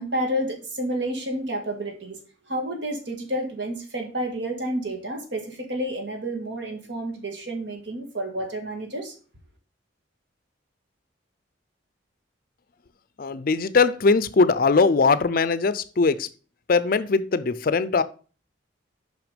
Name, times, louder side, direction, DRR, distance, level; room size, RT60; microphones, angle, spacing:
voice 1, 0.0-2.2 2.5-9.1, right 1 dB, 65° right, 1.8 m, -30 dB
voice 2, 13.2-16.3 16.7-18.0, left 4 dB, 50° left, 0.4 m, -20 dB
6.1 x 5.7 x 5.1 m
head